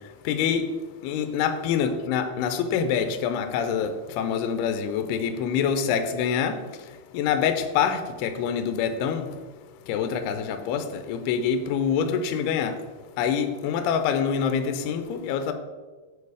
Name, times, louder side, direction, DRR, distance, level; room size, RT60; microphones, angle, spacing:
voice 1, 0.3-0.7 1.0-6.5 7.1-9.3 9.9-12.7 13.2-15.5, left 7 dB, 80° left, 8 dB, 2.5 m, -25 dB
6.8 x 4.7 x 4.8 m, 1.3 s
omnidirectional pair, 4.8 m